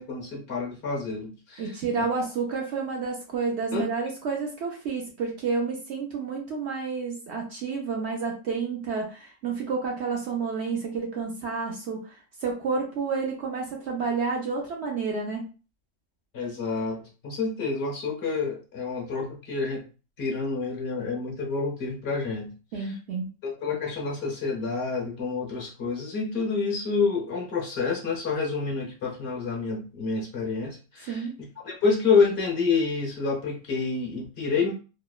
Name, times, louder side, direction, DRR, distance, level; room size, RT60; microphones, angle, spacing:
voice 1, 0.0-1.7 2.0-2.1 3.7-3.8 16.3-19.8 20.2-22.5 22.8-22.9 23.4-34.7, left 4 dB, 50° left, -1 dB, 0.9 m, -28 dB
voice 2, 1.6-12.1 12.4-15.4 22.7-23.3 31.1-31.3, right 5 dB, 65° right, 0 dB, 0.7 m, -30 dB
2.9 x 2.0 x 2.3 m, 0.33 s
omnidirectional pair, 1.5 m